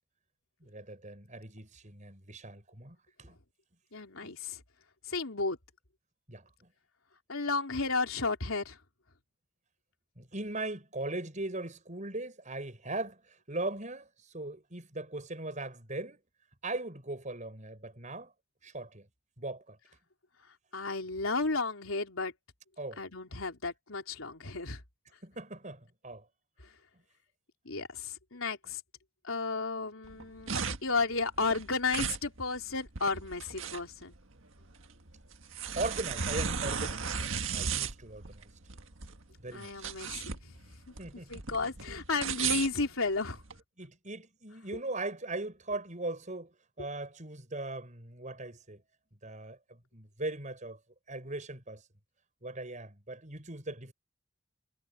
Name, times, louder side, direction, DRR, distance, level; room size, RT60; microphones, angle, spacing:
voice 1, 0.6-3.4 4.2-4.3 6.3-6.7 10.2-16.2 16.6-18.3 18.6-19.1 19.4-19.8 22.8-23.0 25.2-26.3 35.7-38.5 39.4-39.8 41.0-41.7 43.8-48.8 49.2-50.8 51.1-51.8 52.4-53.9, right 2 dB, 35° right, 6.8 m, -39 dB
voice 2, 3.9-4.6 5.1-5.6 7.3-8.8 20.7-22.3 23.0-24.8 27.7-28.8 29.2-30.5 30.8-34.2 39.5-40.3 40.9-41.0 41.3-43.4, left 3 dB, 90° left, 3.6 m, -33 dB
sound 1, 30.0-43.6, right 6 dB, 70° right, 1.7 m, -36 dB
head